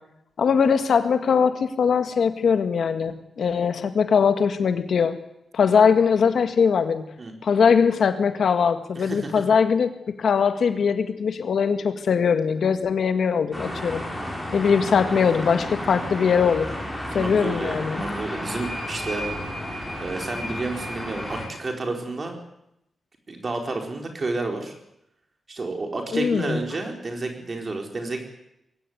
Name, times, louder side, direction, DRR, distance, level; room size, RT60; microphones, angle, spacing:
voice 1, 0.4-5.2 5.5-7.0 7.4-9.9 10.2-14.0 14.5-16.7 17.1-18.0 26.1-26.6, left 6 dB, 65° left, 8 dB, 1.9 m, -21 dB
voice 2, 8.9-9.3 17.1-19.3 20.0-22.4 23.3-24.7 25.5-28.2, right 3 dB, 35° right, 3 dB, 4.5 m, -30 dB
sound 1, 13.5-21.5, equal, ahead, 6.4 m, -32 dB
22.0 x 17.0 x 9.5 m, 0.81 s
wide cardioid pair, 165°, 0 cm